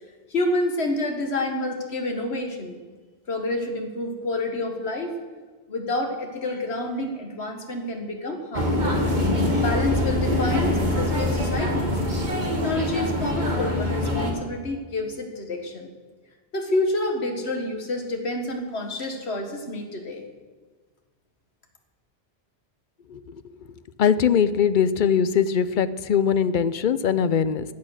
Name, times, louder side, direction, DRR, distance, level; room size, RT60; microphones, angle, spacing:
voice 1, 0.3-2.8 3.3-5.2 5.7-9.0 9.6-12.0 12.5-15.9 16.5-20.2, left 2 dB, 80° left, 4 dB, 1.9 m, -28 dB
sound 1, 8.5-14.3, left 1 dB, 45° right, 1.8 m, -24 dB
voice 2, 24.0-27.6, left 7 dB, 55° left, 14 dB, 0.7 m, -21 dB
15.0 x 8.7 x 6.4 m, 1.4 s
omnidirectional pair, 1.1 m